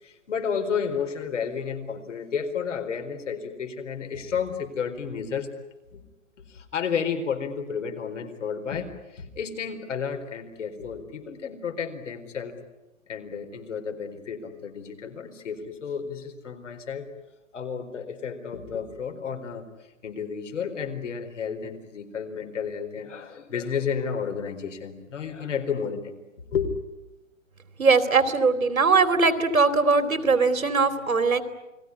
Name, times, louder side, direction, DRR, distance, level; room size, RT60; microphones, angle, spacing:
voice 1, 0.0-5.5 5.9-6.0 6.5-12.6 13.1-17.1 17.5-19.7 20.0-26.1 26.5-26.7, left 6 dB, 60° left, 7 dB, 4.5 m, -31 dB
voice 2, 27.8-31.4, right 4 dB, 85° right, 9 dB, 3.2 m, -20 dB
29.5 x 20.5 x 9.9 m, 1.0 s
hypercardioid pair, 145°, 40 cm